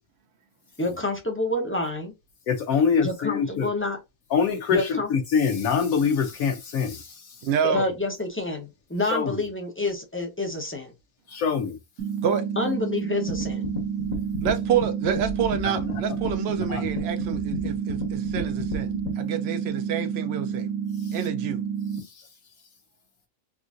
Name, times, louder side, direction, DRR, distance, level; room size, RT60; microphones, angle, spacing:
voice 1, 0.8-2.1 3.0-4.0 4.7-5.1 7.6-10.9 12.6-13.6 20.5-20.6, left 2 dB, 15° left, 0.5 m, -28 dB
voice 2, 2.5-3.7 4.3-7.5 9.0-9.4 11.3-11.8 16.7-16.9 21.0-21.2 21.9-22.3, left 6 dB, 85° left, 1.0 m, -25 dB
voice 3, 7.4-7.9 12.2-12.4 14.4-20.7 21.1-21.6, right 8 dB, 60° right, 0.8 m, -28 dB
sound 1, 12.0-22.0, right 7 dB, 75° right, 1.5 m, -30 dB
sound 2, 13.3-19.2, left 2 dB, 35° left, 0.9 m, -34 dB
3.7 x 2.5 x 2.5 m
omnidirectional pair, 1.4 m